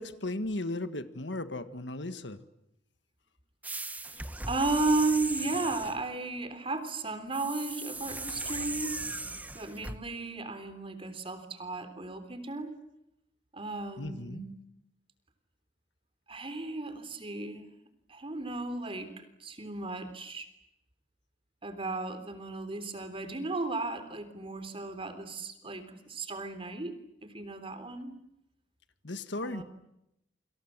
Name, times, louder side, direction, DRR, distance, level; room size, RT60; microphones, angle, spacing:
voice 1, 0.0-2.4 14.0-14.4 29.0-29.6, left 2 dB, 65° left, 10 dB, 1.7 m, -36 dB
sound 1, 3.6-6.0 7.3-10.0, right 2 dB, 10° right, 1.0 m, -37 dB
voice 2, 4.0-9.1 9.5-12.8 13.5-14.6 16.3-17.7 18.1-20.5 21.6-28.2 29.4-29.6, right 3 dB, 30° right, 10 dB, 3.5 m, -34 dB
29.0 x 26.0 x 7.5 m, 0.82 s
head